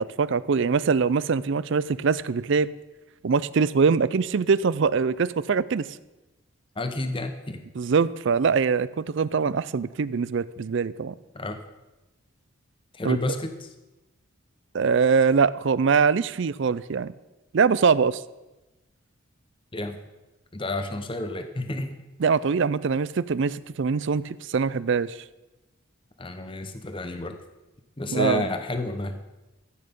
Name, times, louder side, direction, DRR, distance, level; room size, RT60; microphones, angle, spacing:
voice 1, 0.0-2.7 3.2-5.9 7.8-11.1 13.0-13.2 14.7-17.1 17.5-18.2 22.2-25.2 28.1-28.5, right 5 dB, 55° right, 18 dB, 0.4 m, -23 dB
voice 2, 6.8-7.6 11.3-11.6 12.9-13.7 19.7-20.0 20.5-21.9 26.2-27.4 28.0-29.4, left 2 dB, 25° left, 8 dB, 0.7 m, -30 dB
14.0 x 8.9 x 5.3 m, 1.0 s
head